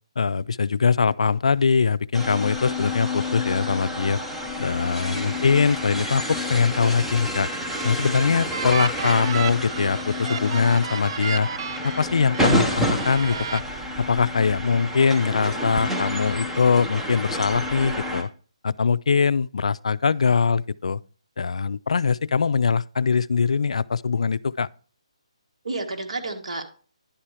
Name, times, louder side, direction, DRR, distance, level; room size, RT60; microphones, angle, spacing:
voice 1, 0.2-4.2 4.6-7.5 7.8-11.5 11.8-13.6 14.0-18.3 18.6-21.0 21.4-24.7, left 5 dB, 75° left, 0.3 m, -22 dB
sound 1, 2.1-18.2, left 1 dB, 5° right, 0.8 m, -29 dB
voice 2, 5.0-5.4 25.6-26.7, right 2 dB, 75° right, 1.6 m, -32 dB
sound 2, 7.5-12.6 13.0-13.6, right 7 dB, 45° right, 0.4 m, -33 dB
10.5 x 4.3 x 4.9 m
hypercardioid pair, 160°, 3 cm